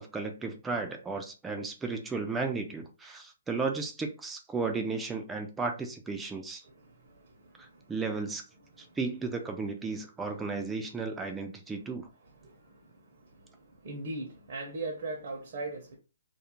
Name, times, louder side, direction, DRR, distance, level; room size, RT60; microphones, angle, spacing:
voice 1, 0.0-6.6 7.6-8.4 9.0-12.1, right 4 dB, 10° right, 0.3 m, -34 dB
voice 2, 6.6-7.9 8.7-9.0 12.2-15.9, right 2 dB, 50° right, 0.6 m, -41 dB
2.3 x 2.0 x 2.8 m
hypercardioid pair, 155°, 0 cm